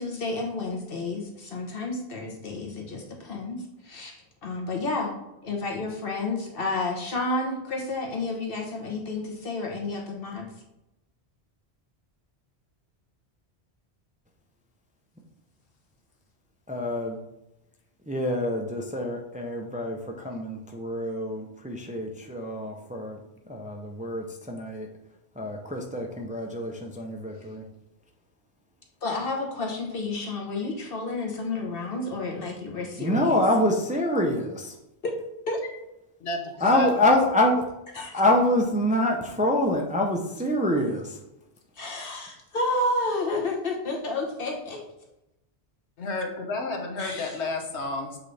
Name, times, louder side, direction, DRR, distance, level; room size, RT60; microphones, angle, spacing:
voice 1, 0.0-4.2 4.4-5.1 5.4-10.5 29.0-33.4 35.0-35.1 35.5-35.7 37.9-38.2 41.8-44.8 47.0-47.3, left 2 dB, 60° left, 1 dB, 1.3 m, -31 dB
voice 2, 16.7-17.2 18.1-23.2 23.5-24.9 25.4-27.6 33.0-34.7 36.6-37.6 38.1-41.2, left 1 dB, 10° right, 1 dB, 0.5 m, -26 dB
voice 3, 36.2-37.0 46.0-48.2, left 2 dB, 85° left, 2 dB, 1.3 m, -31 dB
7.4 x 3.9 x 3.3 m, 0.90 s
omnidirectional pair, 1.1 m